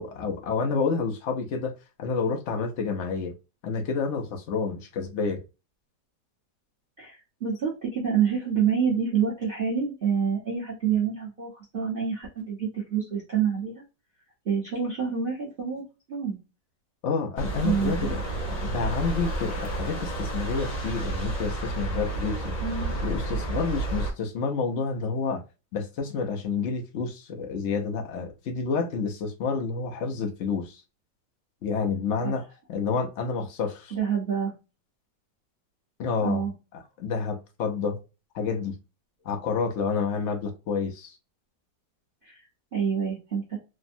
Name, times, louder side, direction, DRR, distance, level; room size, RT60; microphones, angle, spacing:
voice 1, 0.0-1.7 2.0-3.3 3.6-5.4 17.0-18.2 18.6-22.5 23.0-25.4 25.7-30.8 31.6-32.4 32.7-33.9 36.0-36.5 37.0-38.0 38.3-38.7 39.2-41.2, left 5 dB, 75° left, 0.6 m, -29 dB
voice 2, 7.0-13.8 14.4-16.4 17.6-18.2 22.6-22.9 32.2-32.3 33.9-34.5 36.2-36.5 42.2-42.5 42.7-43.6, right 7 dB, 40° right, 0.9 m, -27 dB
sound 1, 17.4-24.1, right 2 dB, 35° left, 0.7 m, -31 dB
3.4 x 2.1 x 2.5 m
omnidirectional pair, 1.9 m